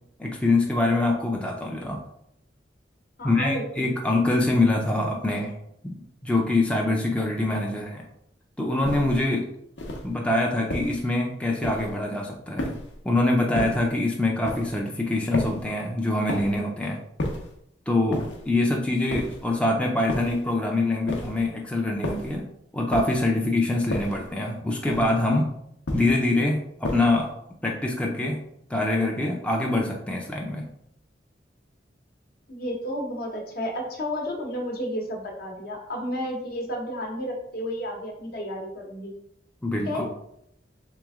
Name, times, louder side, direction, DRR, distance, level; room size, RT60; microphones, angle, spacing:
voice 1, 0.2-2.0 3.2-5.5 5.8-5.9 6.2-8.1 8.6-9.5 10.0-12.7 13.0-17.0 17.9-22.5 22.7-25.5 25.9-27.3 27.6-28.4 28.7-30.6 39.6-40.1, left 2 dB, 5° left, -1 dB, 0.4 m, -24 dB
voice 2, 3.2-3.8 32.5-39.1 39.9-40.1, equal, 55° left, 1 dB, 0.9 m, -32 dB
sound 1, 8.8-9.2 9.8-10.1 10.7-11.1 11.6-12.0 12.6-13.0 13.5-13.9 14.4-14.8 15.3-15.7 16.3-16.7 17.2-17.6 18.1-18.5 19.1-19.5 20.1-20.5 21.1-21.5 22.0-22.4 22.9-23.3 23.9-24.3 24.9-25.3 25.9-26.3 26.8-27.3, left 1 dB, 85° left, 0.7 m, -32 dB
3.4 x 3.0 x 3.5 m, 0.75 s
head